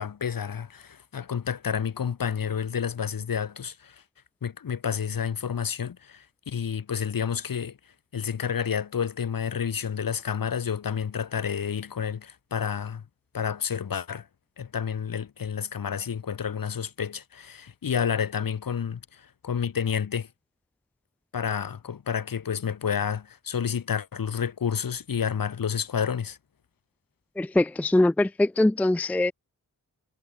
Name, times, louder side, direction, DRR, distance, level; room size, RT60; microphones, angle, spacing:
voice 1, 0.0-4.0 4.4-7.8 8.1-13.0 13.3-14.3 14.6-20.3 21.3-26.4, left 7 dB, 70° left, 2.1 m, -30 dB
voice 2, 27.4-29.3, left 1 dB, 5° left, 0.4 m, -22 dB
cardioid pair, 70°, 35 cm